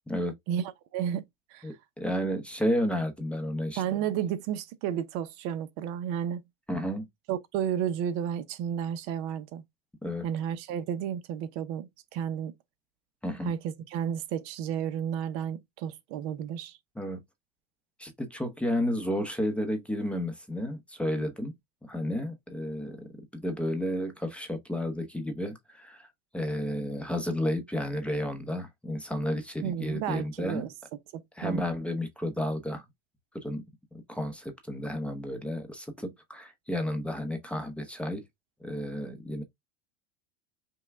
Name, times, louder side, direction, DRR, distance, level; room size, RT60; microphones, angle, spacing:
voice 1, 0.5-1.2 1.5-1.7 3.8-6.4 7.3-9.6 10.2-12.5 13.4-16.8 29.6-30.7 31.1-31.6, right 9 dB, 50° right, 0.7 m, -32 dB
voice 2, 1.6-3.8 6.7-7.1 10.0-10.2 13.2-13.5 17.0-17.2 18.0-21.5 21.8-26.1 26.3-30.7 31.4-32.8 33.3-33.6 34.1-38.2 38.6-39.4, equal, 5° left, 0.7 m, -32 dB
5.6 x 2.2 x 3.4 m
supercardioid pair, 140°, 30 cm